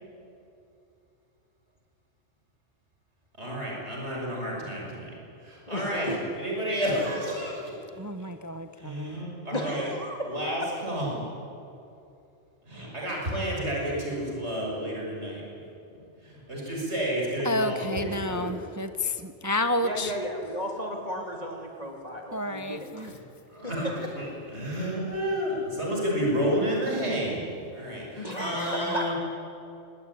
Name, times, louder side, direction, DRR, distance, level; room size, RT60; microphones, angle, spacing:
voice 1, 3.4-5.1 5.4-6.1 6.4-7.6 8.8-9.9 10.3-11.2 12.7-15.4 16.2-17.9 18.3-18.5 23.5-27.4 27.7-29.1, equal, 70° right, -2 dB, 6.4 m, -30 dB
voice 2, 5.7-6.2 9.5-10.4 10.6-10.7 19.8-23.2 23.6-23.9 28.1-29.1, equal, 35° left, 0 dB, 3.0 m, -34 dB
voice 3, 8.0-9.2 17.4-20.1 22.3-23.1 28.4-28.9, left 1 dB, 20° right, 9 dB, 0.7 m, -31 dB
24.0 x 19.0 x 9.9 m, 2.7 s
omnidirectional pair, 1.2 m